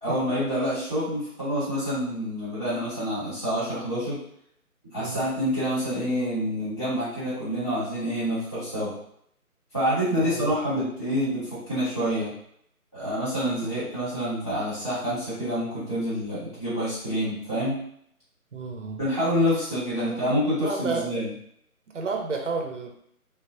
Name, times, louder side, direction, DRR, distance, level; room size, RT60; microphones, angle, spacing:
voice 1, 0.0-4.2 4.8-8.9 9.7-12.3 12.9-17.8 19.0-21.3, equal, 5° right, -13 dB, 0.8 m, -27 dB
voice 2, 10.2-10.6 13.6-13.7 18.5-19.0 20.0-21.1 21.9-22.9, right 4 dB, 55° right, 2 dB, 0.6 m, -31 dB
3.2 x 2.0 x 2.6 m, 0.68 s
figure-of-eight pair, 155°, 45 cm